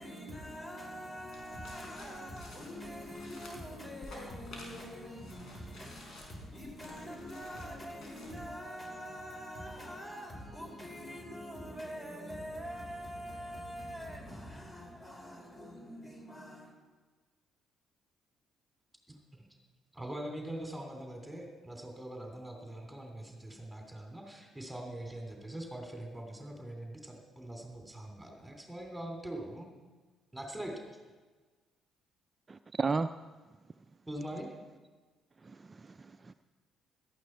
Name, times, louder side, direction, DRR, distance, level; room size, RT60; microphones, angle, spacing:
voice 1, 0.0-16.7, equal, 25° left, 5.9 m, -44 dB
sound 1, 1.3-8.5, left 1 dB, 55° left, 4.7 m, -52 dB
voice 2, 19.9-29.7 30.3-30.8 34.1-34.5, right 1 dB, 10° right, 3.2 m, -43 dB
voice 3, 32.5-33.1 35.4-36.3, right 4 dB, 30° right, 0.5 m, -34 dB
17.5 x 13.0 x 4.6 m
hypercardioid pair, 45°, 0 cm